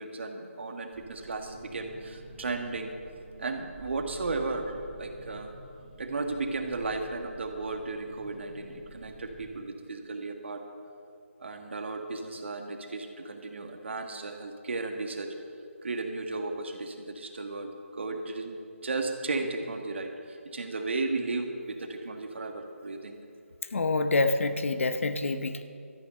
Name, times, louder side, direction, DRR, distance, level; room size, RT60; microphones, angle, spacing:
voice 1, 0.0-2.9 3.4-5.5 6.0-10.6 11.4-15.3 15.8-23.2, right 3 dB, 55° right, 5 dB, 1.7 m, -35 dB
sound 1, 0.9-9.6, right 1 dB, 25° right, 3.5 m, -50 dB
voice 2, 23.7-25.6, left 3 dB, 65° left, 9 dB, 0.9 m, -27 dB
13.0 x 9.7 x 6.7 m, 2.5 s
figure-of-eight pair, 165°, 7 cm